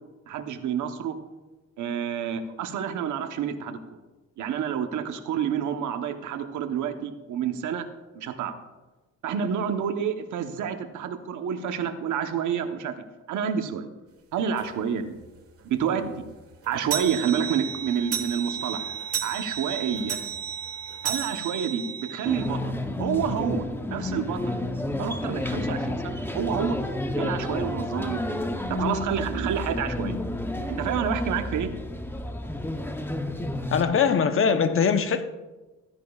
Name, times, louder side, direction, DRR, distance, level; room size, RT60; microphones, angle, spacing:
voice 1, 0.3-1.2 1.8-3.8 4.4-7.9 8.1-8.5 9.2-13.0 13.3-13.9 14.3-15.1 15.7-16.3 16.7-19.0 19.2-20.2 21.0-24.5 25.0-26.8 27.2-30.2 30.7-31.7, right 7 dB, 75° right, 1.1 m, -29 dB
sound 1, 14.6-14.7 15.2-15.3 15.6-15.7 16.0-22.5, right 8 dB, 50° right, 1.6 m, -33 dB
sound 2, 22.2-33.8, left 1 dB, 5° left, 0.8 m, -30 dB
voice 2, 33.7-35.2, left 6 dB, 45° left, 0.9 m, -21 dB
15.0 x 10.0 x 2.4 m
cardioid pair, 90°, 30 cm